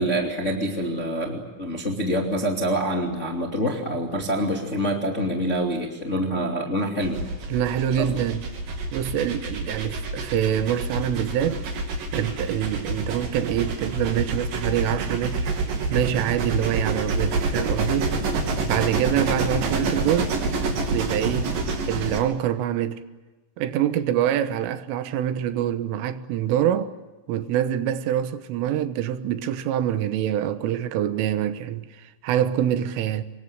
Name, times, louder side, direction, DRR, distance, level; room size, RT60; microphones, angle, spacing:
voice 1, 0.0-7.3, equal, 25° left, 1.6 m, -26 dB
sound 1, 7.0-22.2, right 3 dB, 50° right, 4.2 m, -27 dB
voice 2, 7.5-8.4 8.9-11.6 12.1-15.5 15.9-18.1 18.7-20.4 20.9-21.6 21.9-23.0 23.6-26.9 27.3-33.2, right 11 dB, 80° right, 3.7 m, -25 dB
26.0 x 22.5 x 8.7 m
omnidirectional pair, 5.7 m